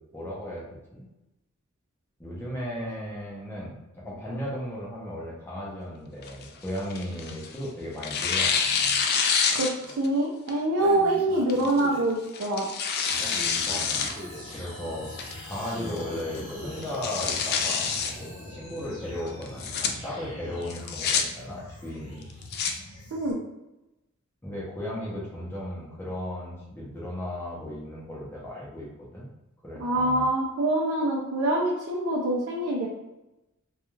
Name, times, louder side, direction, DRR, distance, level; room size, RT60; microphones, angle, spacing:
voice 1, 0.1-0.6 0.9-1.1 2.2-9.1 13.6-14.1 14.5-15.1 15.4-17.9 18.2-22.3 24.4-28.9 29.1-29.3 29.6-30.3, left 1 dB, 10° left, -6 dB, 0.6 m, -36 dB
Tearing, 6.2-7.6 8.0-10.1 10.5-10.6 11.5-11.8 12.3-14.1 14.5-14.6 15.2-15.6 16.0-16.1 16.3-16.4 16.8-18.1 19.4-19.9 20.7-21.2 22.2-22.7, left 6 dB, 50° left, 0.3 m, -27 dB
voice 2, 9.5-12.7 23.1-23.4 29.8-32.9, right 1 dB, 70° right, -3 dB, 0.5 m, -25 dB
Breathing, 10.8-12.1 13.2-14.5 15.6-16.9, equal, 25° right, 0.7 m, -41 dB
sound 1, 13.1-23.3, left 1 dB, 75° left, 0.8 m, -43 dB
2.3 x 2.3 x 3.0 m, 0.95 s
head